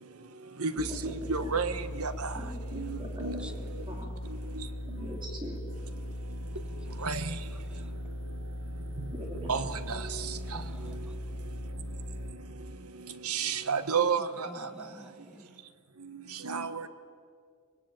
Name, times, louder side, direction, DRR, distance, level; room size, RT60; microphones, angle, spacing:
voice 1, 0.7-1.6 2.3-4.2 4.9-6.1 9.1-9.8 16.6-16.7, equal, 20° right, 0 dB, 3.4 m, -43 dB
sound 1, 0.8-12.3, equal, 60° left, 6.4 m, -39 dB
voice 2, 1.3-1.7 2.0-2.1 2.7-3.4 7.0-7.2 9.5-9.6 13.3-14.3 16.5-16.7, right 6 dB, 85° right, 11 dB, 1.5 m, -29 dB
voice 3, 10.5-11.2 14.5-15.5, equal, 5° right, 6 dB, 1.7 m, -49 dB
24.5 x 22.0 x 9.1 m, 2.2 s
head